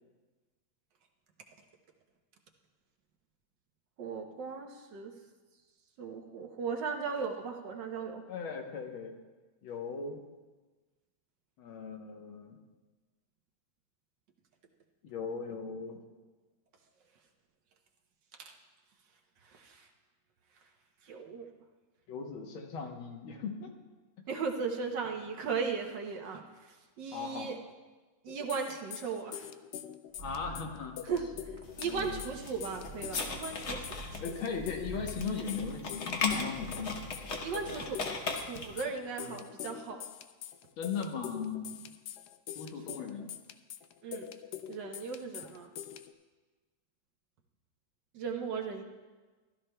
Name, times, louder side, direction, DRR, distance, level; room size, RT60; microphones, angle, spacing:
voice 1, 4.0-5.1 6.0-8.2 18.4-18.5 19.5-19.9 21.0-21.5 24.3-27.6 28.2-29.5 31.0-31.3 31.8-34.3 37.4-38.1 38.4-40.1 44.0-44.3 44.7-45.7 48.1-48.8, right 5 dB, 65° right, 3 dB, 1.4 m, -37 dB
voice 2, 8.3-9.2 9.6-10.2 11.6-12.6 15.0-16.0 22.1-23.8 27.1-27.5 30.2-31.0 31.8-32.2 34.2-37.0 39.2-39.5 40.8-41.9 42.6-43.3, left 5 dB, 75° left, 3 dB, 1.8 m, -38 dB
sound 1, 28.3-46.1, left 10 dB, 90° left, 0.8 m, -45 dB
sound 2, 30.1-37.9, left 1 dB, 35° right, 1.3 m, -47 dB
sound 3, 31.6-38.8, left 4 dB, 50° left, 0.8 m, -38 dB
15.0 x 12.5 x 2.2 m, 1.3 s
omnidirectional pair, 2.3 m